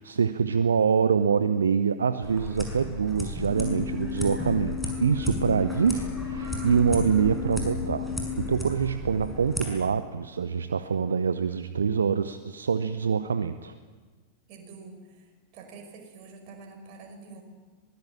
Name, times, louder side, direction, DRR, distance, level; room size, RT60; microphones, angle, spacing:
voice 1, 0.0-8.1 8.4-13.7, right 6 dB, 70° right, 12 dB, 0.8 m, -25 dB
sound 1, 2.2-9.6, equal, 5° left, 6.2 m, -35 dB
sound 2, 3.5-8.5, left 9 dB, 45° left, 5.5 m, -35 dB
voice 2, 14.5-17.4, right 4 dB, 45° right, 4 dB, 6.0 m, -47 dB
23.5 x 20.0 x 8.8 m, 1.4 s
figure-of-eight pair, 90°, 0 cm